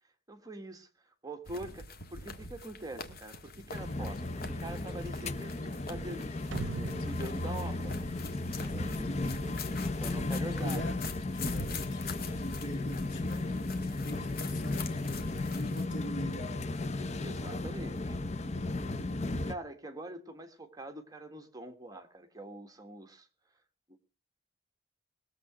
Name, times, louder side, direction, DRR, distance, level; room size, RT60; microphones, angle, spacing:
voice 1, 0.3-0.9 1.2-8.1 8.6-9.4 10.0-10.8 17.2-18.2 18.8-23.3, right 1 dB, 20° right, 1.5 m, -44 dB
sound 1, 1.4-15.9, left 3 dB, 55° left, 1.8 m, -45 dB
sound 2, 3.7-19.6, left 2 dB, 35° left, 0.7 m, -35 dB
sound 3, 6.5-9.0, right 4 dB, 85° right, 0.6 m, -41 dB
voice 2, 9.1-9.5 10.6-11.0 11.3-12.1 12.4-15.3 15.5-16.8, equal, 80° left, 3.0 m, -41 dB
20.5 x 7.7 x 4.8 m
head